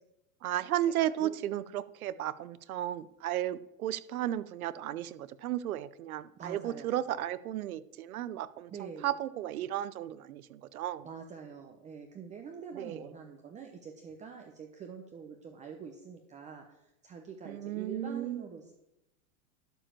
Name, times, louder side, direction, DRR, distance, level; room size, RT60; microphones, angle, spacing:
voice 1, 0.4-11.1 12.7-13.0 17.4-18.5, right 12 dB, 80° right, 16 dB, 0.8 m, -34 dB
voice 2, 1.0-1.3 6.4-7.2 8.7-9.1 11.0-18.7, right 6 dB, 15° right, 4 dB, 0.8 m, -46 dB
11.5 x 5.0 x 7.5 m, 0.87 s
supercardioid pair, 140°, 42 cm